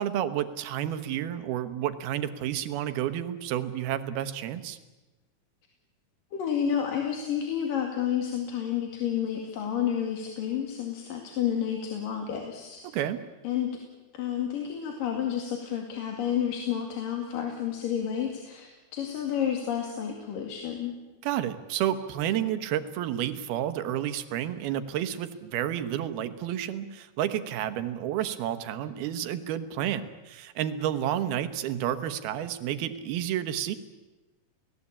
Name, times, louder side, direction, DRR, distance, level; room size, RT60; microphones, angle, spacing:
voice 1, 0.0-4.8 12.9-13.2 21.2-33.8, right 11 dB, 85° right, 11 dB, 3.2 m, -30 dB
voice 2, 6.3-12.8 13.4-13.7 14.1-20.9, left 9 dB, 65° left, 3 dB, 3.8 m, -30 dB
30.0 x 19.0 x 8.7 m, 1.1 s
omnidirectional pair, 4.3 m